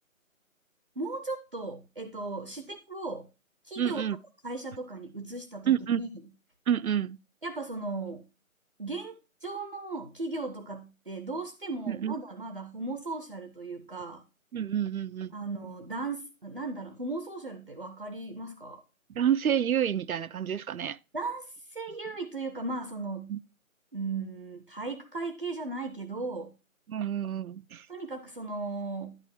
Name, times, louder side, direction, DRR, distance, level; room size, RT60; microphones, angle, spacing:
voice 1, 1.0-3.3 3.6-4.0 4.4-6.1 7.4-8.2 8.8-14.2 15.3-18.8 21.1-23.3 23.9-26.5 27.9-29.2, right 3 dB, 40° right, 0.5 m, -37 dB
voice 2, 3.8-4.2 5.7-6.0 6.7-7.2 11.9-12.1 14.5-15.3 19.1-21.0 23.3-23.4 26.9-27.9, right 9 dB, 85° right, 0.5 m, -28 dB
10.5 x 4.8 x 4.4 m
figure-of-eight pair, 170°, 42 cm